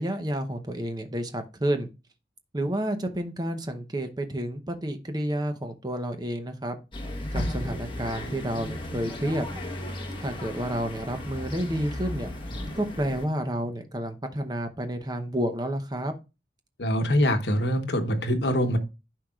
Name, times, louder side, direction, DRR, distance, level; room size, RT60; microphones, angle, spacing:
voice 1, 0.0-1.9 2.5-6.8 7.3-9.5 10.2-12.3 12.8-16.2, right 1 dB, 25° right, 0.8 m, -30 dB
sound 1, 6.9-13.3, left 1 dB, 30° left, 1.2 m, -35 dB
voice 2, 16.8-18.8, equal, 75° left, 1.0 m, -24 dB
11.0 x 4.7 x 2.4 m
head